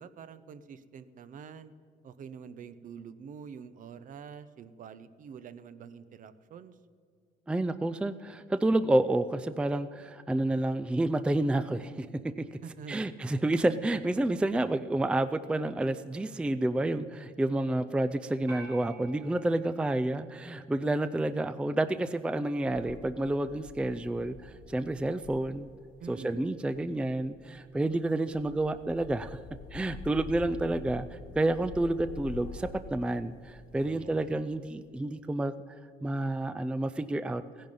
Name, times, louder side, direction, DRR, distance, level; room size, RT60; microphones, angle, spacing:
voice 1, 0.0-1.7 2.0-6.7 12.6-13.1 26.0-26.4 33.8-34.4, right 6 dB, 50° right, 13 dB, 0.7 m, -46 dB
voice 2, 7.5-12.6 12.9-25.7 26.1-29.4 29.7-35.5 36.0-37.4, right 1 dB, 5° right, 12 dB, 0.4 m, -29 dB
sound 1, 18.5-21.0, right 2 dB, 80° right, 4.4 m, -51 dB
sound 2, 22.7-34.4, left 5 dB, 85° left, 1.4 m, -47 dB
16.0 x 10.5 x 5.4 m, 2.2 s
cardioid pair, 110°, 17 cm